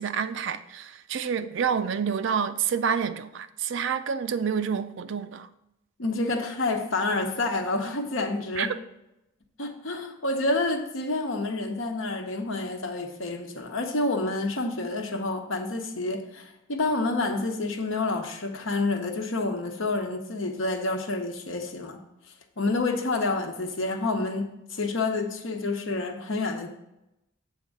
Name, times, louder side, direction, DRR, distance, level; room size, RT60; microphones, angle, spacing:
voice 1, 0.0-5.5 8.6-8.7, right 7 dB, 60° right, 0.4 m, -28 dB
voice 2, 6.0-8.7 9.6-22.0 22.6-26.7, left 2 dB, 65° left, 1.0 m, -28 dB
8.2 x 3.6 x 6.4 m
head